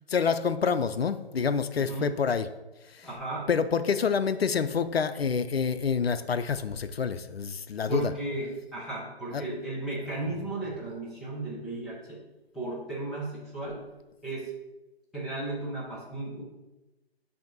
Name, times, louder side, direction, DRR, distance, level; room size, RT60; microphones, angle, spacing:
voice 1, 0.1-2.5 2.9-3.1 3.5-8.1 9.3-9.4, left 6 dB, 70° left, 11 dB, 0.5 m, -27 dB
voice 2, 1.8-2.2 3.0-3.5 7.9-12.3 12.5-13.9 14.2-14.5 15.1-16.4, right 2 dB, ahead, -9 dB, 0.3 m, -35 dB
6.8 x 2.7 x 5.2 m, 1.0 s
figure-of-eight pair, 145°, 32 cm